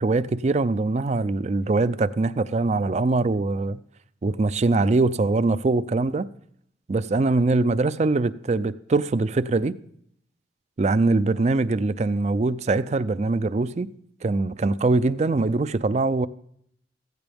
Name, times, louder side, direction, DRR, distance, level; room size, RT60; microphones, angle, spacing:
voice 1, 0.0-3.8 4.2-6.3 6.9-9.7 10.8-13.9 14.2-16.3, right 3 dB, 40° right, 0.4 m, -22 dB
16.0 x 15.0 x 3.5 m
head